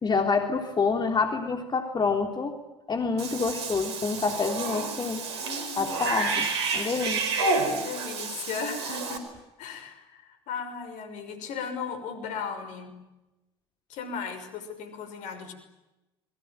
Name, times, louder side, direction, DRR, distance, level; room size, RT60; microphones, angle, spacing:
voice 1, 0.0-2.6 2.9-5.2 5.8-7.2 7.6-7.8, left 4 dB, 30° left, 4 dB, 3.6 m, -27 dB
Cat / Bathtub (filling or washing), 3.2-9.2, right 3 dB, 80° right, 4.5 m, -30 dB
voice 2, 5.4-6.0 7.6-9.2 9.6-12.9 13.9-15.5, left 6 dB, 60° left, 10 dB, 5.9 m, -36 dB
28.0 x 22.5 x 9.2 m, 1.0 s
hypercardioid pair, 65°, 14 cm